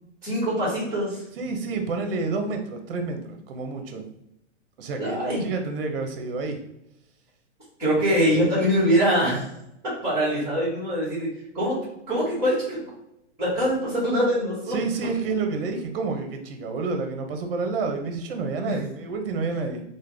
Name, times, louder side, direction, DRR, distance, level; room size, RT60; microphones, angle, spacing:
voice 1, 0.2-1.2 5.0-5.4 7.8-9.4 10.0-11.3 11.5-11.8 12.1-12.8 13.4-14.7 18.6-18.8, equal, 5° right, -10 dB, 1.4 m, -23 dB
voice 2, 1.4-4.0 4.8-6.6 14.7-19.8, right 4 dB, 50° right, 5 dB, 0.7 m, -29 dB
3.3 x 2.2 x 3.3 m, 0.82 s
hypercardioid pair, 155°, 36 cm